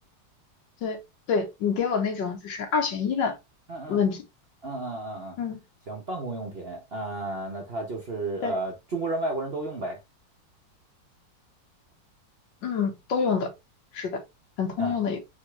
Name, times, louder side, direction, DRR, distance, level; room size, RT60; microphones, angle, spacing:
voice 1, 1.3-3.4 3.9-4.2 5.4-5.6 8.4-8.6 12.6-13.5 13.9-14.2 14.6-15.2, left 6 dB, 75° left, 1.8 m, -26 dB
voice 2, 3.7-4.0 4.6-5.4 5.9-10.0 14.8-15.0, right 2 dB, 45° right, 0.9 m, -32 dB
4.2 x 3.6 x 3.1 m
omnidirectional pair, 2.0 m